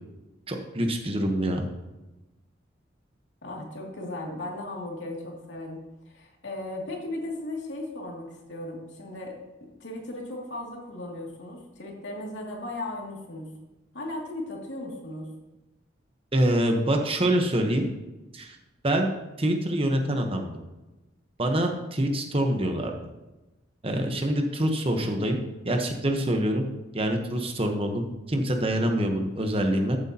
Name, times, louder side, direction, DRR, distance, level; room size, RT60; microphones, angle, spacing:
voice 1, 0.5-1.7 16.3-17.8 18.3-18.6 18.8-19.1 19.4-20.5 21.4-22.9 23.8-25.4 25.6-26.6 26.9-30.0, right 1 dB, 30° right, 4 dB, 1.1 m, -25 dB
voice 2, 3.4-5.8 6.1-9.4 9.8-13.5 13.9-15.3, left 1 dB, 80° left, -1 dB, 2.6 m, -36 dB
14.0 x 8.0 x 2.9 m, 1.0 s
head